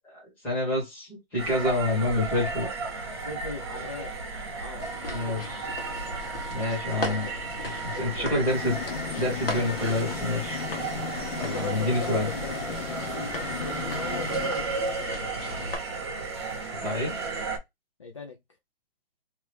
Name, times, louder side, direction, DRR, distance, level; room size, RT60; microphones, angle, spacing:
voice 1, 0.0-2.7 5.1-5.7 6.5-7.3 7.6-8.8 9.2-10.6 11.4-12.3 16.8-17.1, left 2 dB, 5° left, 0.9 m, -28 dB
sound 1, 1.4-17.6, right 3 dB, 25° right, 0.8 m, -34 dB
voice 2, 3.2-4.1 4.5-5.7 7.0-7.2 7.9-8.3 11.4-15.4 18.0-18.4, left 4 dB, 35° left, 0.4 m, -40 dB
sound 2, 4.8-15.8, left 2 dB, 70° left, 1.2 m, -38 dB
sound 3, 8.5-15.2, left 7 dB, 90° left, 0.7 m, -37 dB
2.9 x 2.2 x 3.3 m
hypercardioid pair, 175°, 30 cm